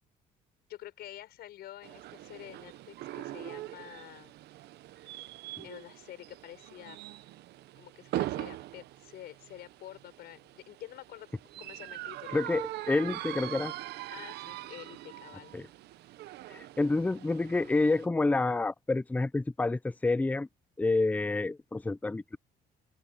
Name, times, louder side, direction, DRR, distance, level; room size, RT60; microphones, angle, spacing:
voice 1, 0.7-4.3 5.0-5.1 5.6-7.0 7.8-12.4 14.1-15.5, left 13 dB, 70° left, 6.6 m, -48 dB
sound 1, 1.8-18.1, right 15 dB, 75° right, 0.9 m, -42 dB
voice 2, 12.3-13.7 15.5-15.7 16.5-20.5 20.8-22.4, left 3 dB, 10° left, 0.5 m, -28 dB
cardioid pair, 110°, 17 cm